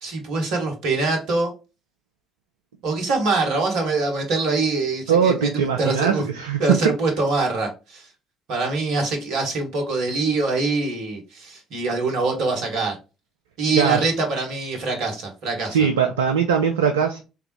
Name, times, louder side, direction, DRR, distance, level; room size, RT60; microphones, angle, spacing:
voice 1, 0.0-1.5 2.8-6.2 6.6-8.1 8.5-13.0 13.6-15.8, right 3 dB, 65° right, 1.3 m, -24 dB
voice 2, 5.1-6.9 13.8-14.1 15.7-17.2, right 7 dB, 80° right, 0.4 m, -20 dB
3.5 x 3.4 x 3.0 m
figure-of-eight pair, 50°, 0 cm